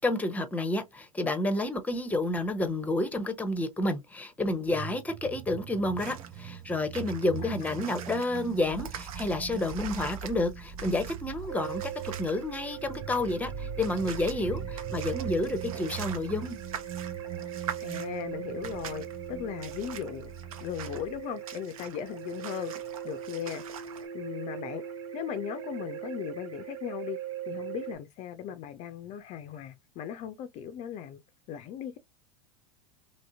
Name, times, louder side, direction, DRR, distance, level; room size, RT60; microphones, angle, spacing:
voice 1, 0.0-16.6, left 2 dB, 10° left, 0.7 m, -30 dB
sound 1, 4.7-21.2, right 8 dB, 35° right, 0.4 m, -41 dB
sound 2, 6.0-24.1, right 8 dB, 80° right, 0.8 m, -45 dB
voice 2, 7.4-8.0 17.8-20.3 20.6-22.7 23.0-23.6 24.1-24.8 25.1-27.2 27.5-31.2 31.5-32.0, left 9 dB, 40° left, 0.4 m, -37 dB
sound 3, 11.5-27.9, right 10 dB, 60° right, 1.4 m, -40 dB
3.0 x 2.7 x 2.7 m
hypercardioid pair, 100°, 18 cm